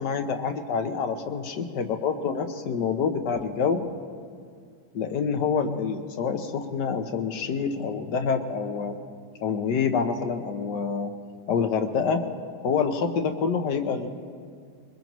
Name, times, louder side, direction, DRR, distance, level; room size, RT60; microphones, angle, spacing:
voice 1, 0.0-3.9 4.9-9.0 9.4-11.1 11.5-12.2 12.6-14.1, left 6 dB, 80° left, 6 dB, 1.6 m, -27 dB
22.5 x 20.5 x 3.1 m, 2.2 s
omnidirectional pair, 1.8 m